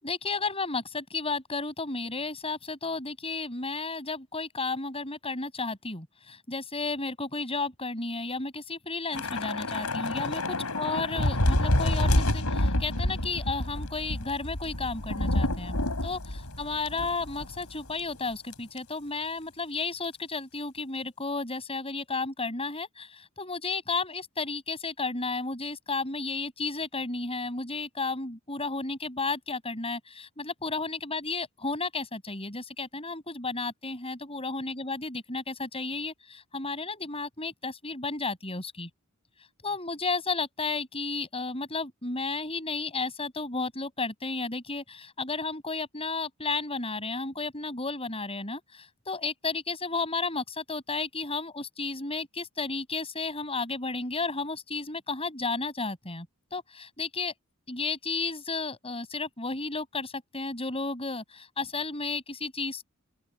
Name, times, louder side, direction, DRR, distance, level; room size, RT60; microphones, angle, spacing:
voice 1, 0.0-15.8 16.0-38.9 39.6-57.3 57.7-62.9, left 3 dB, 25° left, 7.8 m, -33 dB
Thunder / Rain, 9.1-17.7 18.0-18.2 18.5-18.8, left 1 dB, 85° left, 4.8 m, -28 dB
open air
head